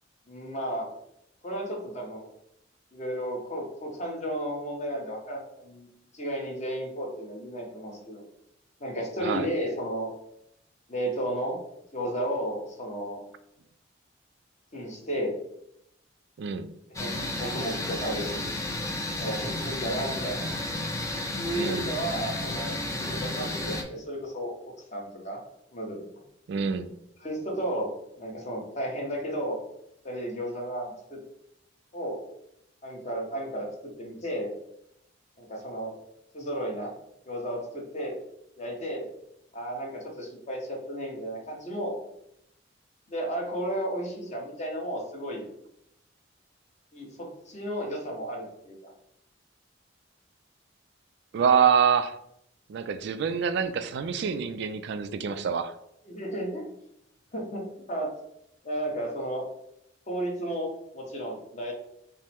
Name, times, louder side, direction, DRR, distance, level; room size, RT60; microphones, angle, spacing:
voice 1, 0.3-0.9 1.4-2.3 2.9-5.9 6.1-8.2 8.8-10.1 10.9-11.6 11.9-13.2 14.7-15.4 17.0-18.4 19.2-20.4 21.4-24.5 24.9-25.4 25.7-26.0 27.2-27.9 28.2-29.6 30.0-31.2 31.9-32.2 32.8-33.7 34.0-34.5 35.4-35.9 36.3-36.9 37.2-38.2 38.6-39.1 39.5-42.0 43.1-45.4 46.9-48.9 56.0-56.6 57.3-58.1 58.6-59.4 60.1-61.7, right 1 dB, 40° left, 0 dB, 1.0 m, -33 dB
voice 2, 16.4-16.7 21.5-21.9 26.5-26.9 51.3-52.2 52.7-55.7, right 7 dB, 60° right, 11 dB, 0.3 m, -26 dB
sound 1, 16.9-23.8, left 1 dB, 15° left, 0.5 m, -32 dB
5.4 x 2.0 x 3.4 m, 0.77 s
head